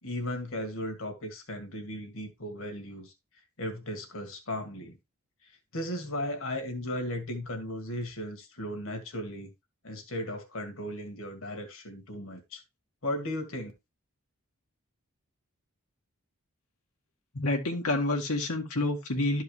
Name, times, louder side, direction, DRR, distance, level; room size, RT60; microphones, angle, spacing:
voice 1, 0.0-3.1 3.6-5.0 5.4-9.5 9.8-12.6 13.0-13.7, left 1 dB, 65° left, 1.9 m, -36 dB
voice 2, 17.3-19.4, left 2 dB, 85° left, 1.9 m, -28 dB
12.5 x 4.7 x 3.2 m
head